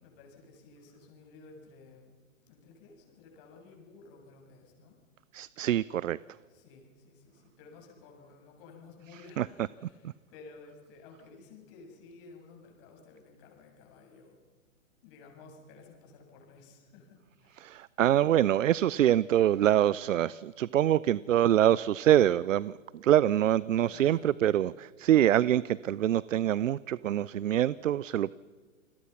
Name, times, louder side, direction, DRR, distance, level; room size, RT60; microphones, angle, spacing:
voice 1, 0.0-2.2 2.5-5.0 6.5-14.4 15.0-17.6 23.9-24.4, left 4 dB, 45° left, 1 dB, 7.4 m, -54 dB
voice 2, 5.3-6.2 9.1-9.7 17.6-22.7 23.0-28.4, right 11 dB, 70° right, 21 dB, 0.6 m, -25 dB
29.0 x 21.0 x 5.9 m, 1.5 s
hypercardioid pair, 120°, 40 cm